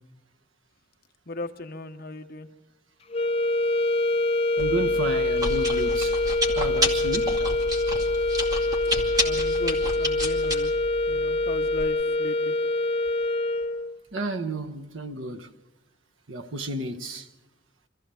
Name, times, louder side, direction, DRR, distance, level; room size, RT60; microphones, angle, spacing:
voice 1, 1.3-2.5 9.2-10.7 11.1-12.6, left 2 dB, 50° left, 1.1 m, -37 dB
sound 1, 3.1-14.0, left 2 dB, 30° left, 0.6 m, -25 dB
Chewing mastication, 4.6-11.8, left 1 dB, 20° right, 2.4 m, -31 dB
voice 2, 4.6-6.2 6.5-7.3 14.1-15.5 16.3-17.3, right 2 dB, 85° right, 1.3 m, -32 dB
26.0 x 14.5 x 7.0 m
head